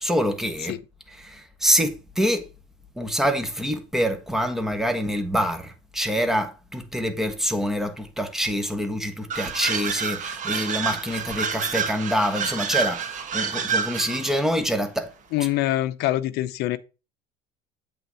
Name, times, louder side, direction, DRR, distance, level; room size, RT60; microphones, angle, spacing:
voice 1, 0.0-0.8 1.1-2.5 3.0-15.1 15.4-15.5, equal, ahead, 1.2 m, -26 dB
sound 1, 9.3-14.5, right 6 dB, 45° right, 1.3 m, -28 dB
voice 2, 15.3-16.8, left 15 dB, 65° left, 0.7 m, -24 dB
7.9 x 3.7 x 5.6 m
supercardioid pair, 105°, 18 cm